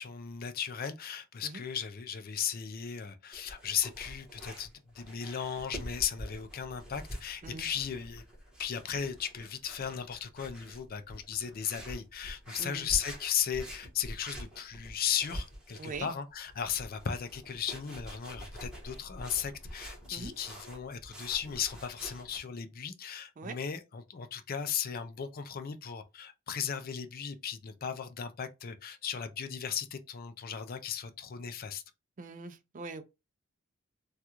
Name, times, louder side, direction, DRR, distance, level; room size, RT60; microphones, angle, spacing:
voice 1, 0.0-8.2 8.6-31.8, left 8 dB, 45° left, 0.4 m, -36 dB
sound 1, 3.3-22.4, equal, 5° right, 1.4 m, -46 dB
voice 2, 32.2-33.0, right 3 dB, 40° right, 0.4 m, -42 dB
3.5 x 2.4 x 2.9 m
head